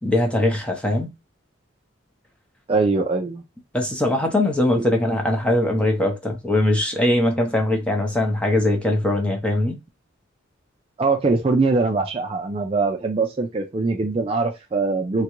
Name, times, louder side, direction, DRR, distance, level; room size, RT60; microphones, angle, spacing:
voice 1, 0.0-1.1 3.7-9.8, left 1 dB, 5° left, 0.6 m, -21 dB
voice 2, 2.7-3.4 4.8-4.9 11.0-15.2, right 3 dB, 30° right, 0.3 m, -22 dB
3.7 x 2.2 x 2.9 m
head